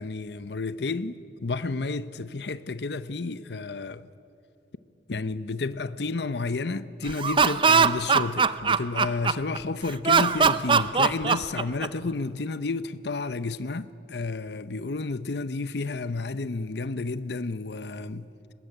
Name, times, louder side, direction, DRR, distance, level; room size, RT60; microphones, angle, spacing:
voice 1, 0.0-4.1 5.1-18.3, left 3 dB, 70° left, 0.7 m, -31 dB
Laughter, 7.1-9.6 10.0-12.1, right 5 dB, 30° right, 0.6 m, -21 dB
23.0 x 20.0 x 9.9 m
head